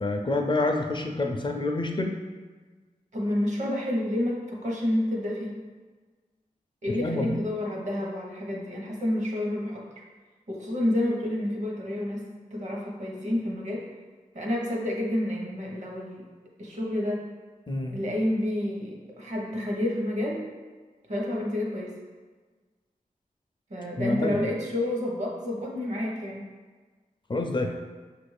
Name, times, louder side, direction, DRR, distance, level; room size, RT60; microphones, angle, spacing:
voice 1, 0.0-2.2 7.0-7.4 17.7-18.0 24.0-24.4 27.3-27.7, left 2 dB, 35° left, 3 dB, 0.4 m, -27 dB
voice 2, 3.1-5.6 6.8-10.0 10.5-13.9 14.3-16.3 16.6-17.3 17.9-20.5 21.1-22.0 23.7-26.5, left 1 dB, 55° right, -1 dB, 0.9 m, -29 dB
6.0 x 2.5 x 3.2 m, 1.4 s
wide cardioid pair, 90°, 15 cm